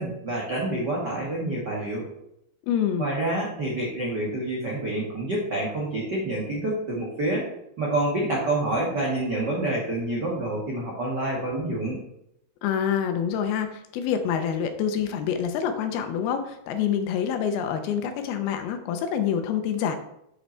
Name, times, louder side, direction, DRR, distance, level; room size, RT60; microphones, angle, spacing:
voice 1, 0.0-2.0 3.0-7.4 7.8-12.0, right 1 dB, 75° right, -3 dB, 0.9 m, -27 dB
voice 2, 2.7-3.1 12.6-20.0, left 8 dB, 80° left, 7 dB, 2.6 m, -26 dB
8.0 x 5.7 x 4.4 m, 0.78 s
omnidirectional pair, 4.6 m